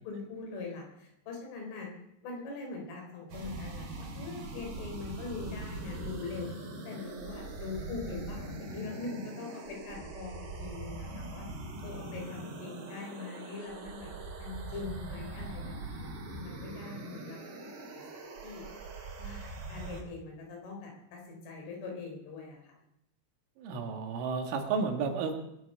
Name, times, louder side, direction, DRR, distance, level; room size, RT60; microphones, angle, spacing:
voice 1, 0.0-1.9 2.2-6.5 6.9-11.5 11.8-14.1 14.4-17.7 18.4-18.6 19.2-22.8, left 4 dB, 90° left, 1 dB, 6.3 m, -42 dB
sound 1, 3.3-20.0, right 2 dB, 55° right, 4.7 m, -42 dB
voice 2, 23.6-25.3, right 5 dB, 90° right, 4 dB, 4.3 m, -32 dB
22.0 x 8.2 x 6.6 m, 0.81 s
omnidirectional pair, 5.4 m